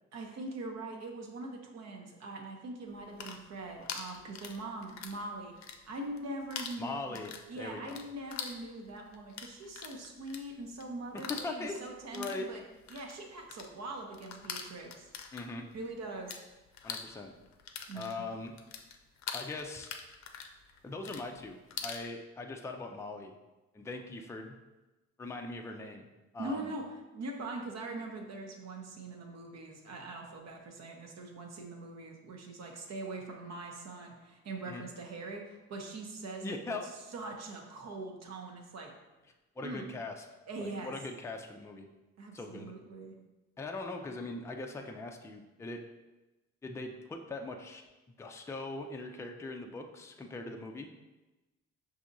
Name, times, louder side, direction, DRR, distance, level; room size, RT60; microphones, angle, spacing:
voice 1, 0.1-7.2 7.5-12.6 12.9-15.1 15.7-16.4 17.9-18.3 26.4-36.8 37.1-38.9 39.6-39.9 40.5-40.9 42.2-43.1, right 2 dB, 60° right, 2 dB, 0.8 m, -42 dB
sound 1, 3.0-5.2 5.5-6.2 6.5-16.4 16.7-22.0, left 7 dB, 65° left, 0.5 m, -44 dB
voice 2, 6.8-8.0 11.3-11.8 12.1-12.5 15.3-15.6 16.8-17.3 17.9-18.6 19.3-19.9 20.8-23.4 23.7-24.6 25.2-26.1 26.3-26.7 34.7-34.8 36.4-36.9 39.6-40.3 40.6-41.9 42.3-42.7 43.6-45.8 46.6-47.8 48.2-50.9, left 2 dB, 10° left, 3 dB, 0.4 m, -41 dB
5.8 x 2.7 x 2.6 m, 1.1 s
cardioid pair, 90°, 30 cm